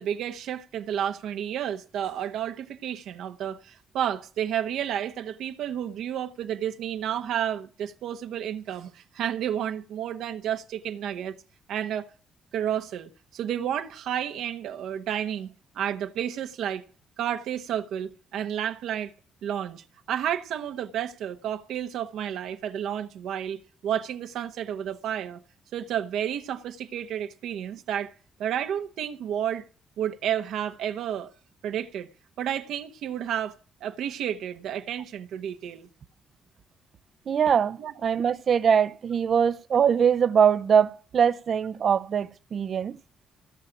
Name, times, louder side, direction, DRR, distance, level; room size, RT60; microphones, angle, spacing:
voice 1, 0.0-11.4 11.7-12.1 12.5-16.8 17.2-19.1 19.4-25.4 25.7-28.1 28.4-29.7 30.0-31.3 31.6-32.1 32.4-33.5 33.8-35.9 37.8-37.9, right 10 dB, 70° right, 1.2 m, -31 dB
voice 2, 37.3-43.0, right 7 dB, 55° right, 0.8 m, -22 dB
15.5 x 6.4 x 9.8 m
hypercardioid pair, 50°, 0 cm